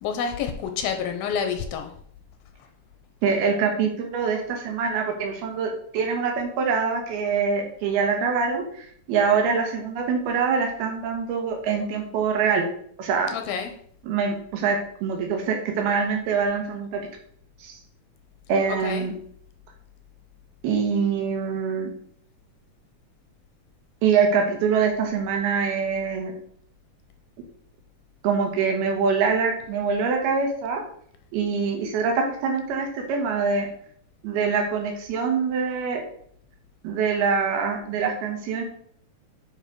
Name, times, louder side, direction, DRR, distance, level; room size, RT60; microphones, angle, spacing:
voice 1, 0.0-1.9 13.3-13.7 18.7-19.1, left 7 dB, 80° left, 6 dB, 2.5 m, -28 dB
voice 2, 3.2-12.7 13.0-13.3 14.1-17.0 17.6-17.8 18.5-19.1 20.6-21.9 24.0-26.3 28.2-30.8 31.3-33.7 34.2-36.0 36.8-38.6, right 5 dB, 80° right, 2 dB, 3.2 m, -24 dB
9.3 x 3.9 x 4.8 m, 0.62 s
omnidirectional pair, 4.5 m